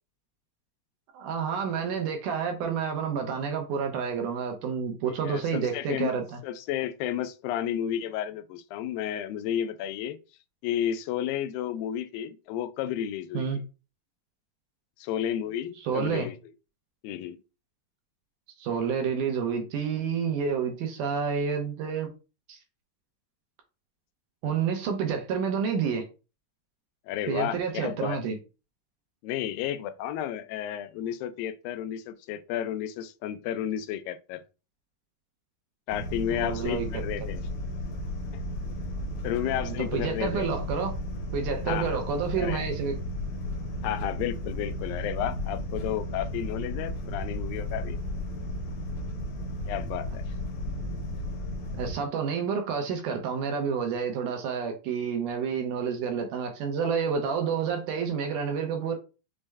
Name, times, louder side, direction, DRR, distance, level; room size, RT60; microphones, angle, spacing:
voice 1, 1.1-6.4 13.3-13.6 15.8-16.3 18.6-22.1 22.5-22.6 24.4-26.0 27.3-28.4 36.3-36.9 39.4-40.9 41.3-43.0 51.8-59.0, right 6 dB, 75° right, 2.1 m, -29 dB
voice 2, 5.1-6.1 6.4-10.2 10.6-13.5 15.0-16.4 17.0-17.4 27.1-28.2 29.2-34.4 35.9-37.4 39.2-40.5 41.7-42.0 42.4-42.7 43.8-48.0 49.7-50.2, left 10 dB, 90° left, 2.3 m, -32 dB
sound 1, 35.9-51.9, left 1 dB, 70° left, 1.9 m, -34 dB
6.3 x 2.1 x 3.4 m
omnidirectional pair, 4.0 m